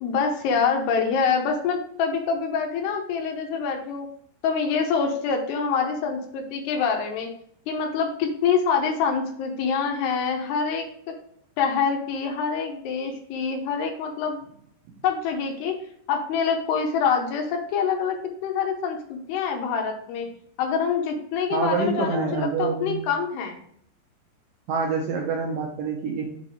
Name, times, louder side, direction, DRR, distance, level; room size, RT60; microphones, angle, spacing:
voice 1, 0.0-4.1 4.4-7.3 7.7-10.8 11.6-14.4 15.0-15.7 16.1-18.2 18.4-20.3 20.6-23.6, left 6 dB, 75° left, 3 dB, 2.9 m, -25 dB
voice 2, 21.5-23.0 24.7-26.2, right 4 dB, 80° right, 0 dB, 2.0 m, -26 dB
6.6 x 4.0 x 4.8 m, 0.66 s
omnidirectional pair, 5.1 m